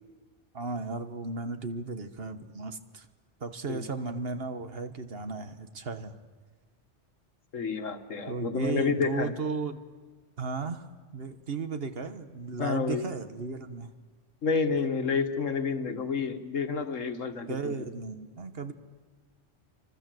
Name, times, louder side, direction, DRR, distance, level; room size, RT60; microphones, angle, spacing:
voice 1, 0.5-3.1 3.4-6.1 8.3-9.8 10.4-10.9 11.1-13.9 17.5-18.7, right 4 dB, 50° right, 9 dB, 1.6 m, -35 dB
voice 2, 7.5-9.3 12.6-13.1 14.4-17.9, left 5 dB, 90° left, 8 dB, 1.9 m, -29 dB
28.5 x 25.0 x 7.8 m, 1.4 s
omnidirectional pair, 1.3 m